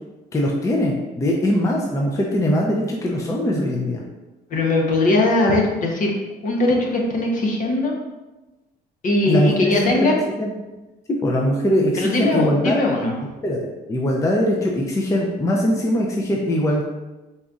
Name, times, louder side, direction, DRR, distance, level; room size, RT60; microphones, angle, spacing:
voice 1, 0.3-4.0 9.3-9.5 9.8-10.1 10.4-10.5 11.2-12.8 13.4-13.6 13.9-16.8, left 1 dB, 20° left, -1 dB, 0.5 m, -21 dB
voice 2, 4.5-6.1 6.4-8.0 9.0-10.2 12.0-13.1, left 2 dB, 50° left, 0 dB, 0.9 m, -20 dB
4.0 x 3.8 x 2.4 m, 1.1 s
cardioid pair, 110°, 17 cm